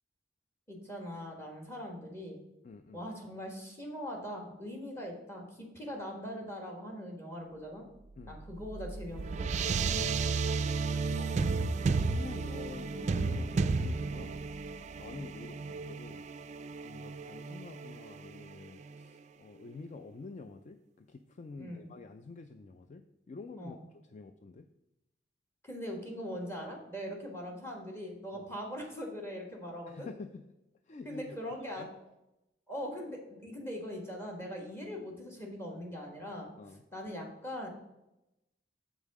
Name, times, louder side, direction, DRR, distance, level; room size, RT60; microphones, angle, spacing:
voice 1, 0.7-2.4 2.9-7.8 8.3-9.7 21.6-21.9 23.6-23.8 25.6-30.1 31.0-31.9 32.7-36.5 36.9-37.7, equal, 15° left, 1 dB, 1.4 m, -41 dB
voice 2, 2.6-3.0 8.2-8.4 10.2-10.5 10.9-14.4 15.0-16.3 16.8-23.8 24.1-24.7 28.3-28.5 29.9-30.4 30.9-31.4 31.7-31.9 36.6-36.8, left 3 dB, 40° left, 8 dB, 0.4 m, -48 dB
sound 1, 8.3-19.0, right 4 dB, 40° right, 0.3 m, -33 dB
7.3 x 5.4 x 4.7 m, 0.90 s
head